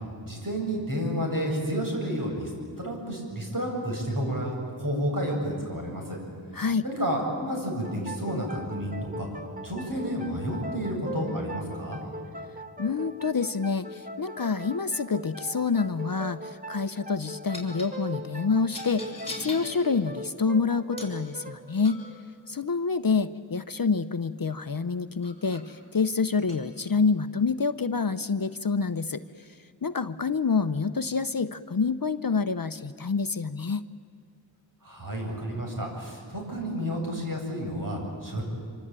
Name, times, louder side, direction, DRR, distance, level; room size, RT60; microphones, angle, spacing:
voice 1, 0.2-2.5 2.8-6.2 6.8-9.3 9.6-12.0 34.8-38.4, equal, 45° right, 0 dB, 7.7 m, -30 dB
voice 2, 6.5-6.9 12.8-22.0 22.5-33.8, left 5 dB, 45° left, 11 dB, 0.8 m, -27 dB
sound 1, 7.8-23.2, right 1 dB, 20° right, 1.2 m, -41 dB
sound 2, 15.8-16.0 17.5-17.9 18.7-19.8 21.0-21.2 21.8-22.2 24.6-24.7 25.2-25.7 26.4-26.6, left 2 dB, 10° left, 6.1 m, -41 dB
26.0 x 25.5 x 9.0 m, 2.3 s
wide cardioid pair, 55°, 46 cm